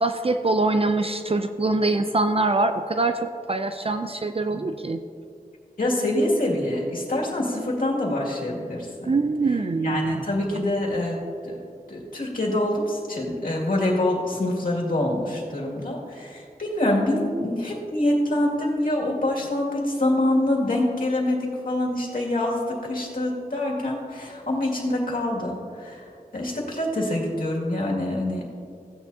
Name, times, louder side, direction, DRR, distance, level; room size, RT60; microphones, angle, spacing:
voice 1, 0.0-5.0 9.1-10.2, right 3 dB, 40° right, 7 dB, 0.4 m, -24 dB
voice 2, 5.8-9.1 9.8-11.2 11.4-11.6 11.9-26.1 26.3-28.5, left 1 dB, 65° left, -3 dB, 2.2 m, -25 dB
15.5 x 9.3 x 2.8 m, 2.4 s
wide cardioid pair, 75°, 15 cm